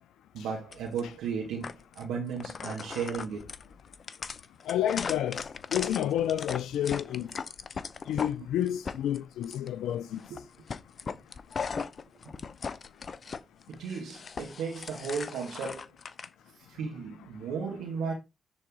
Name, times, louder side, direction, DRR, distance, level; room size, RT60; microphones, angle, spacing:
voice 1, 0.3-3.5 10.3-10.4 13.7-15.8 16.7-18.1, right 6 dB, 75° right, 2.0 m, -35 dB
sound 1, 0.7-1.0 1.6-2.0 2.4-8.3 8.7-9.7 10.2-10.4 10.7-13.4 13.7-16.3, left 5 dB, 50° left, 0.7 m, -38 dB
voice 2, 4.7-5.4 5.7-7.3 8.1-10.2, left 11 dB, 75° left, 0.4 m, -29 dB
10.0 x 4.2 x 3.8 m
hypercardioid pair, 50°, 0 cm